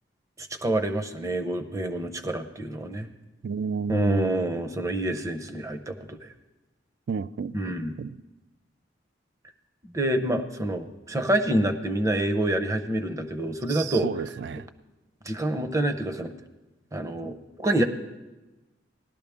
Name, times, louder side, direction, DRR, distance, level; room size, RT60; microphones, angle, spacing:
voice 1, 0.4-3.1 3.9-6.3 7.5-7.9 9.9-14.1 15.2-16.3 16.9-17.8, right 1 dB, 15° right, 0.7 m, -27 dB
voice 2, 3.4-4.4 7.1-7.5 8.0-8.2 13.7-14.7, right 5 dB, 60° right, 0.3 m, -31 dB
18.5 x 12.0 x 3.5 m
head